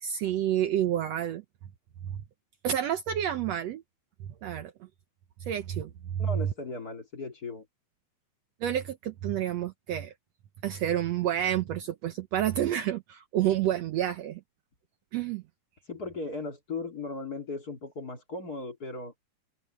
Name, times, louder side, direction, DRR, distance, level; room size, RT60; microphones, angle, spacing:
voice 1, 0.0-1.4 2.1-2.2 2.6-3.8 4.4-4.7 5.4-6.5 8.6-10.1 10.6-14.4 15.1-15.4, right 11 dB, 70° right, 1.8 m, -29 dB
voice 2, 6.2-7.7 15.9-19.1, left 3 dB, 30° left, 2.7 m, -37 dB
omnidirectional pair, 3.6 m